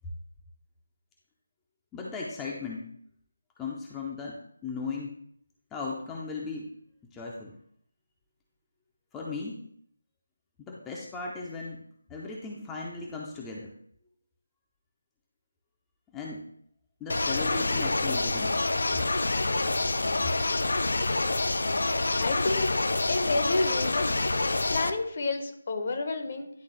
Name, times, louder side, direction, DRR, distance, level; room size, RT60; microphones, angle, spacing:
voice 1, 1.9-2.9 3.6-5.2 5.7-6.7 7.0-7.5 9.1-9.7 10.6-11.8 12.1-13.7 16.1-16.5 17.0-18.7, left 4 dB, 10° left, -3 dB, 0.6 m, -37 dB
sound 1, 17.1-24.9, left 2 dB, 60° left, 0.5 m, -27 dB
voice 2, 22.1-22.7 23.1-24.1 24.7-26.5, left 3 dB, 40° left, 6 dB, 0.9 m, -29 dB
10.5 x 3.5 x 3.3 m, 0.66 s
figure-of-eight pair, 155°, 0 cm